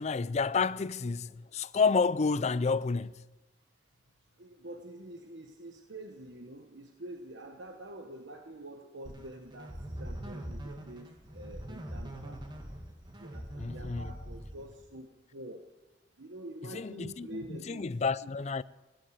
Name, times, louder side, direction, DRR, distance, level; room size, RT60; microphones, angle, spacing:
voice 1, 0.0-3.2 13.6-14.1 16.7-18.6, left 4 dB, 40° left, 0.4 m, -30 dB
voice 2, 4.4-12.4 13.2-15.6 16.2-17.9 18.2-18.3, right 1 dB, 80° right, 1.2 m, -46 dB
sound 1, 9.0-14.9, equal, 25° right, 2.1 m, -42 dB
16.0 x 10.5 x 8.4 m
head